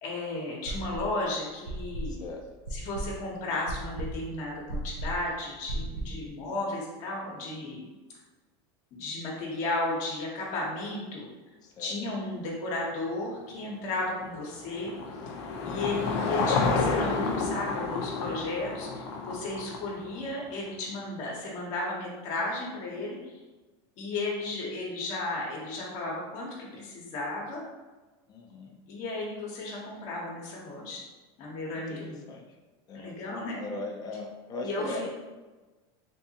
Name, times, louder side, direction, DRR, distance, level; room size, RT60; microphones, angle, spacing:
voice 1, 0.0-2.2 2.7-7.8 8.9-11.2 11.8-14.9 15.6-23.4 24.0-27.6 28.9-31.0 31.4-32.2 32.9-33.6 34.6-35.1, left 2 dB, 55° left, -3 dB, 0.9 m, -34 dB
sound 1, 0.7-1.2 1.7-6.3, right 1 dB, 80° right, 0.6 m, -36 dB
voice 2, 2.1-2.4 7.3-7.7 11.6-11.9 15.4-15.8 20.0-20.4 28.3-28.8 31.9-32.5 32.9-33.1 33.6-35.1, left 2 dB, 30° left, 1 dB, 0.5 m, -40 dB
Car passing by / Engine, 13.9-20.4, left 4 dB, 80° left, 0.5 m, -30 dB
3.4 x 2.7 x 2.8 m, 1.2 s
supercardioid pair, 120°, 14 cm